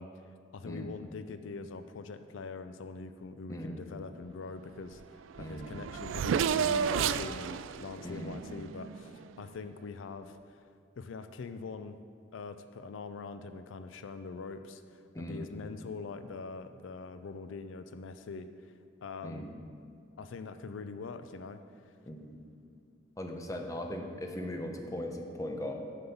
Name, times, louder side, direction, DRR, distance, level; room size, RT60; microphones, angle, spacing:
voice 1, 0.0-10.6 11.0-12.0 12.3-19.5 20.2-21.9, left 4 dB, 85° left, 10 dB, 0.4 m, -43 dB
voice 2, 3.5-3.8 5.4-5.8 8.0-8.4 15.1-15.5 19.2-19.5 22.1-22.4 23.2-25.7, left 1 dB, 15° left, 3 dB, 0.7 m, -39 dB
Race car auto racing / Accelerating revving vroom, 5.0-5.1 5.3-9.3, right 7 dB, 85° right, 0.3 m, -32 dB
7.6 x 5.4 x 7.0 m, 2.4 s
head